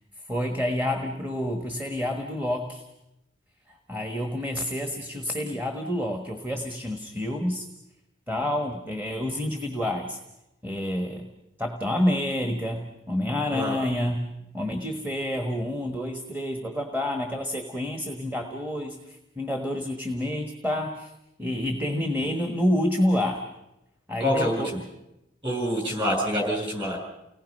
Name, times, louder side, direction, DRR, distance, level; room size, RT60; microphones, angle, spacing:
voice 1, 0.3-2.8 3.7-7.7 8.3-10.2 10.6-11.3 11.6-21.1 21.4-23.4 24.1-24.8, left 1 dB, 10° right, 4 dB, 1.3 m, -28 dB
voice 2, 24.2-24.6 25.4-27.0, equal, 25° right, 0 dB, 7.2 m, -26 dB
29.5 x 19.0 x 5.4 m, 0.90 s
head